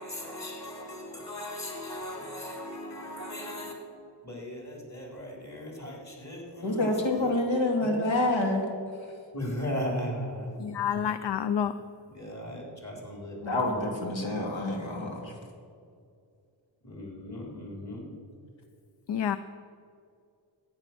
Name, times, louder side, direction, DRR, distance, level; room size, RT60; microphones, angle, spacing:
voice 1, 0.0-3.8 4.2-8.2 9.3-10.5 12.1-13.9 16.8-18.1, left 1 dB, 35° left, 4.0 m, -37 dB
voice 2, 6.6-8.7 13.4-15.4, left 2 dB, 85° left, 2.3 m, -27 dB
voice 3, 10.6-11.8 19.1-19.4, left 8 dB, 65° left, 0.6 m, -28 dB
14.5 x 9.8 x 6.1 m
cardioid pair, 65°, 45 cm